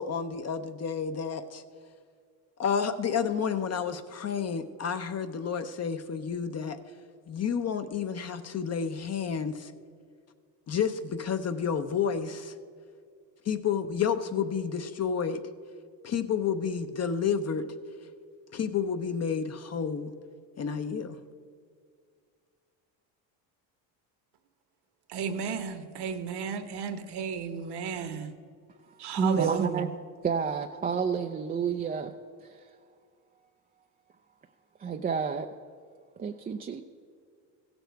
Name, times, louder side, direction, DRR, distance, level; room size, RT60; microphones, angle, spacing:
voice 1, 0.0-1.6 2.6-6.8 7.3-9.7 10.7-12.5 13.4-15.4 16.0-17.7 18.5-20.1 20.6-21.2, left 7 dB, 35° left, 9 dB, 0.7 m, -30 dB
voice 2, 25.1-28.3 29.0-29.9, right 7 dB, 55° right, 9 dB, 1.1 m, -33 dB
voice 3, 28.8-29.9 30.2-32.1 32.4-32.7 34.8-35.5 36.2-36.8, right 6 dB, 20° right, 4 dB, 0.4 m, -30 dB
16.0 x 7.0 x 4.6 m, 2.1 s
supercardioid pair, 80°, 48 cm